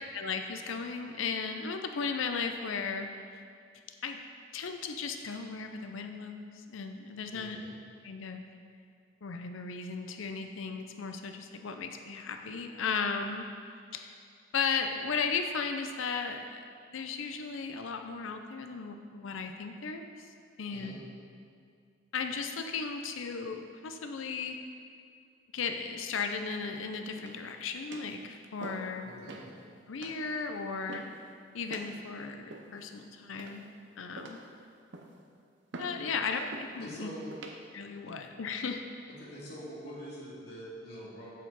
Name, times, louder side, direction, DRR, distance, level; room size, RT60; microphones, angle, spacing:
voice 1, 0.1-3.1 4.0-4.2 4.5-7.6 8.0-8.4 9.2-13.5 13.9-14.1 14.5-20.0 20.6-20.9 22.1-24.6 25.5-29.1 29.9-31.2 31.5-33.6 34.0-34.4 35.8-37.1 37.7-38.8, left 5 dB, 80° left, 5 dB, 0.5 m, -35 dB
voice 2, 7.3-7.7 20.7-21.0 29.0-29.5 36.8-37.3 39.2-41.4, equal, 55° left, -6 dB, 2.1 m, -45 dB
sound 1, 27.2-27.5 27.9-28.2 28.6-28.9 29.3-29.5 30.0-30.2 30.9-31.2 31.7-31.9 32.5-32.9 33.4-33.8 34.2-34.5 34.9-35.2 35.7-36.0 36.5-36.8 37.3-37.6 38.2-38.5, right 2 dB, 65° right, 0.7 m, -45 dB
8.0 x 7.4 x 4.0 m, 2.3 s
head